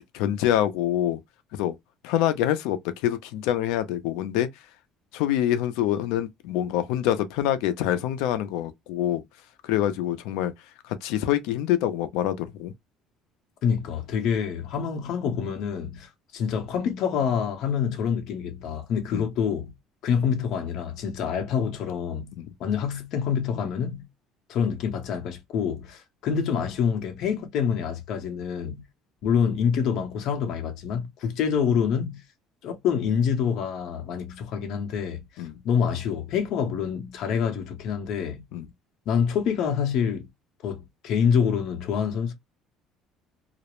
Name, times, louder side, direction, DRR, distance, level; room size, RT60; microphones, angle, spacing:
voice 1, 0.1-1.2 1.6-1.7 2.0-4.5 5.1-9.2 9.6-10.5 10.9-12.7 19.1-19.3 22.4-22.5 35.4-35.6 38.5-38.7, left 12 dB, 85° left, 0.5 m, -25 dB
voice 2, 13.6-19.7 20.0-22.3 22.6-24.0 24.5-28.8 29.2-32.2 32.6-38.4 39.1-40.3 40.6-42.3, left 7 dB, 55° left, 0.7 m, -26 dB
2.4 x 2.0 x 2.9 m
cardioid pair, 160°, 0 cm